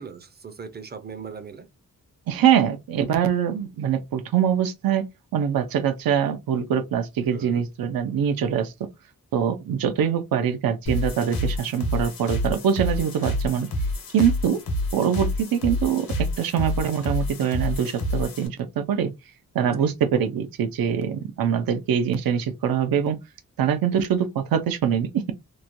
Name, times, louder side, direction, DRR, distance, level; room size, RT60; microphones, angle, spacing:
voice 1, 0.0-1.7 7.3-7.6 19.6-19.9, right 6 dB, 30° right, 0.4 m, -39 dB
voice 2, 2.3-5.0 5.3-8.7 9.3-13.7 14.1-14.6 14.9-16.1 16.4-19.1 19.5-23.2 23.6-25.3, right 8 dB, 80° right, 0.5 m, -23 dB
sound 1, 10.9-18.5, left 1 dB, 85° left, 0.9 m, -28 dB
3.0 x 2.1 x 2.5 m
wide cardioid pair, 170°, 35 cm